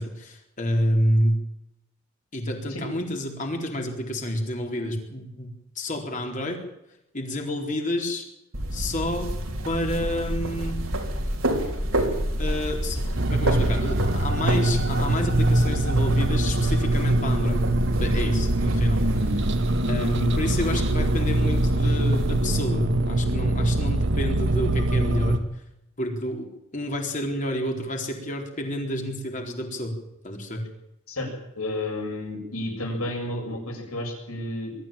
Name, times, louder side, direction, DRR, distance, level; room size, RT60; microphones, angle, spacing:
voice 1, 0.0-1.4 2.3-5.5 5.8-6.6 7.1-8.2 8.7-9.3 9.6-10.9 12.4-13.0 13.3-17.6 18.0-19.4 19.9-25.4 26.0-26.5 26.7-30.0 30.2-30.6, left 1 dB, 35° left, 2 dB, 4.1 m, -29 dB
sound 1, 8.5-22.6, right 1 dB, 75° right, 3.8 m, -29 dB
sound 2, 13.2-25.4, right 1 dB, 55° right, 1.3 m, -23 dB
voice 2, 31.6-34.8, left 1 dB, 85° left, 2 dB, 7.1 m, -31 dB
22.0 x 13.5 x 8.9 m, 0.84 s
head